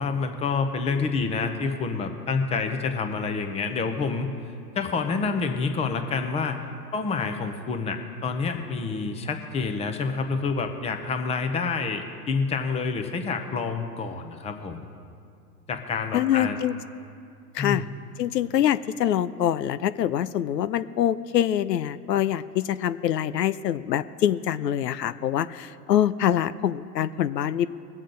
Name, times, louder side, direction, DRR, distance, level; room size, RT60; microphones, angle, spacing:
voice 1, 0.0-4.3 4.7-6.6 6.9-14.9 15.7-16.6 17.6-17.9, left 4 dB, 15° left, 6 dB, 0.8 m, -28 dB
voice 2, 16.1-16.7 17.5-17.8 18.2-27.7, left 11 dB, 90° left, 14 dB, 0.6 m, -25 dB
21.5 x 7.5 x 3.9 m, 2.4 s
hypercardioid pair, 120°, 48 cm